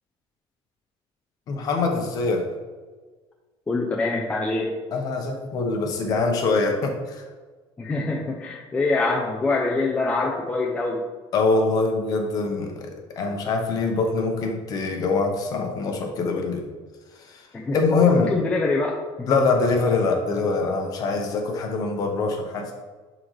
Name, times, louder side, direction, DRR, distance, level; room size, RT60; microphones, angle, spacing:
voice 1, 1.5-2.4 4.9-7.2 11.3-12.9 13.2-16.7 17.2-17.4 17.7-18.3 19.3-22.7, left 3 dB, 35° left, 2 dB, 1.0 m, -23 dB
voice 2, 3.7-4.8 7.8-11.0 17.5-19.4, left 3 dB, 10° left, -1 dB, 0.5 m, -25 dB
10.5 x 3.9 x 3.2 m, 1.4 s
cardioid pair, 175°, 10 cm